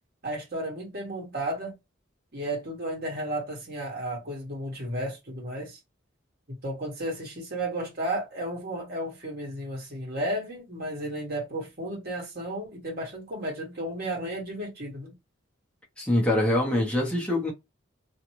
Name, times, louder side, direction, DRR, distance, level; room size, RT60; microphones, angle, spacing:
voice 1, 0.2-1.8 2.3-5.8 6.6-15.1, right 1 dB, 50° right, 1.4 m, -33 dB
voice 2, 16.0-17.5, left 1 dB, 5° left, 0.8 m, -24 dB
2.6 x 2.3 x 3.0 m
head